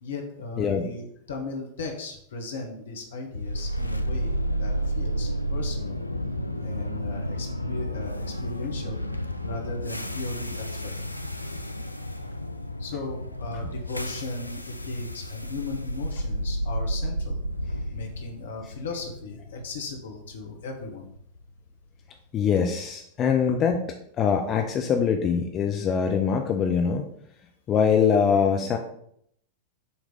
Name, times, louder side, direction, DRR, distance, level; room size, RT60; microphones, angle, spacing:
voice 1, 0.0-6.0 6.6-9.0 9.4-10.9 12.8-17.4 17.9-21.1, left 3 dB, 65° left, 2 dB, 1.4 m, -37 dB
sound 1, 3.3-21.4, equal, 85° left, 0.4 m, -31 dB
voice 2, 22.3-23.8 24.2-27.1 27.7-28.8, left 6 dB, 30° left, 4 dB, 0.6 m, -23 dB
7.1 x 3.3 x 5.2 m, 0.70 s
figure-of-eight pair, 90°, 0 cm